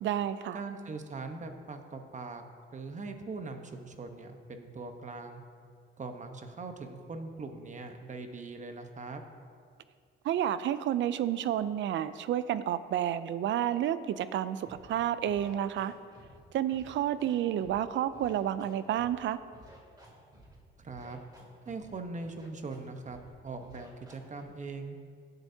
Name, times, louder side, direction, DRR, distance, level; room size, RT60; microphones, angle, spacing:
voice 1, 0.0-0.6 10.2-15.9 16.5-19.4, right 11 dB, 70° right, 14 dB, 0.5 m, -30 dB
voice 2, 0.5-2.4 2.7-5.4 6.0-9.2 20.8-21.2 21.6-23.2 23.4-25.0, right 3 dB, 40° right, 6 dB, 1.1 m, -41 dB
Scratching (performance technique), 14.6-14.9 15.2-16.4 16.7-17.8 18.1-19.2 19.5-20.6 20.9-21.9 22.2-22.8 23.0-23.3 23.6-24.4, right 1 dB, 20° right, 2.8 m, -54 dB
16.0 x 8.0 x 2.8 m, 2.1 s
cardioid pair, 90°, 20 cm